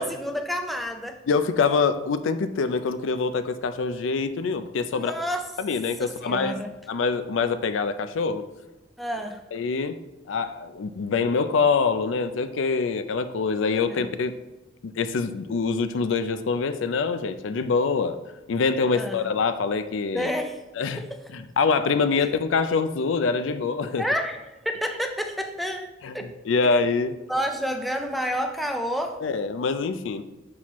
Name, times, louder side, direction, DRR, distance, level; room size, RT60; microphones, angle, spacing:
voice 1, 0.0-1.2 4.9-5.5 6.0-6.7 9.0-9.4 13.9-14.1 18.9-19.3 20.1-20.6 21.0-21.3 22.2-22.3 24.0-25.9 26.1-26.3 27.3-29.2, equal, ahead, 4 dB, 0.4 m, -29 dB
voice 2, 1.3-5.1 5.6-6.6 6.9-8.4 9.5-10.0 10.3-14.3 14.8-18.2 18.5-20.3 20.8-21.0 21.3-24.0 26.0-27.1 29.2-30.2, left 4 dB, 85° left, 11 dB, 0.4 m, -25 dB
6.1 x 5.7 x 3.0 m, 1.1 s
head